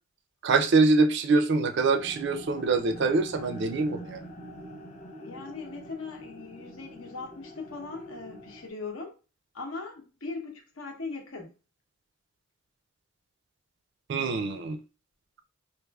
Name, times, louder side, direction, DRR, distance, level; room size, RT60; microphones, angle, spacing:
voice 1, 0.4-4.2 14.1-14.8, right 3 dB, 55° right, 0.4 m, -24 dB
sound 1, 2.0-8.7, equal, 30° left, 0.6 m, -45 dB
voice 2, 5.1-9.1 9.5-11.5, left 4 dB, 70° left, 0.9 m, -39 dB
4.8 x 2.5 x 2.3 m
head